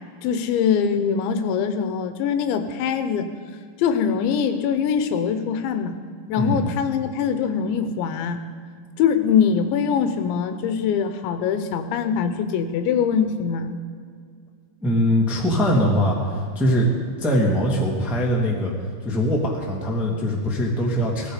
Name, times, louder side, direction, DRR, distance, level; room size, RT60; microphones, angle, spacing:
voice 1, 0.2-3.3 3.8-6.0 6.3-8.4 9.0-13.8, left 7 dB, 85° left, 9 dB, 3.3 m, -23 dB
voice 2, 6.4-6.7 14.8-16.9 17.2-18.7 19.0-21.3, equal, ahead, -2 dB, 1.0 m, -22 dB
18.0 x 14.5 x 5.1 m, 2.2 s
omnidirectional pair, 5.1 m